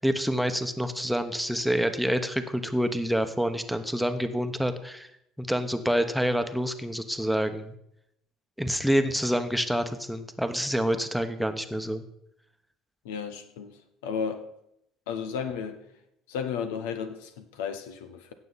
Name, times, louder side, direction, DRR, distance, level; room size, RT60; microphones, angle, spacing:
voice 1, 0.0-5.1 5.4-7.7 8.6-12.0, equal, ahead, 1.1 m, -27 dB
voice 2, 13.0-13.8 14.0-14.4 15.1-15.8 16.3-18.3, left 6 dB, 85° left, 1.0 m, -33 dB
16.5 x 6.8 x 4.1 m
hypercardioid pair, 70°, 0 cm